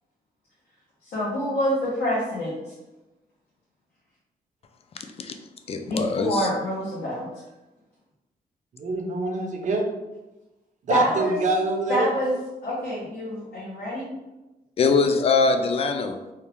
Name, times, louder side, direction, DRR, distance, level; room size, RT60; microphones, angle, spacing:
voice 1, 1.0-2.6 5.9-7.3 10.9-11.4 11.9-12.3 12.6-14.1, equal, 85° left, -7 dB, 0.9 m, -26 dB
voice 2, 5.7-6.5 14.8-16.2, left 4 dB, 40° left, 7 dB, 0.4 m, -22 dB
voice 3, 8.7-9.8 10.9-12.1, right 2 dB, 50° right, 3 dB, 0.6 m, -25 dB
3.2 x 2.3 x 3.4 m, 1.0 s
cardioid pair, 120°, 16 cm